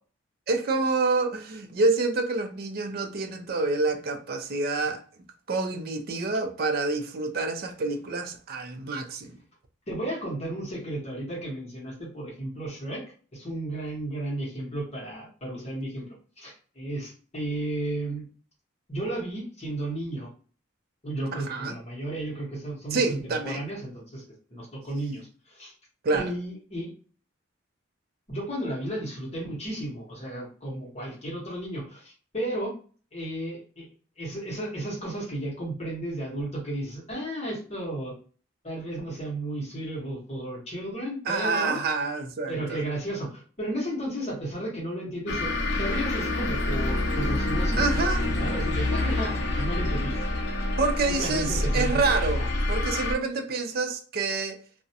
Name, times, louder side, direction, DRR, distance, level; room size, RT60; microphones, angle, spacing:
voice 1, 0.5-5.0 5.5-9.4 21.3-21.7 22.9-23.6 26.0-26.3 41.3-42.8 47.8-48.2 50.8-54.6, right 3 dB, 50° right, 0.4 m, -27 dB
voice 2, 9.9-13.0 13.3-16.1 16.4-18.3 18.9-20.3 21.0-24.2 24.5-25.7 26.1-26.9 28.3-32.7 33.1-33.9 34.2-38.1 38.6-41.8 42.5-50.2 51.2-52.4, right 1 dB, 35° left, 0.9 m, -33 dB
sound 1, 45.3-53.1, left 2 dB, 55° left, 0.4 m, -27 dB
2.4 x 2.1 x 2.6 m
head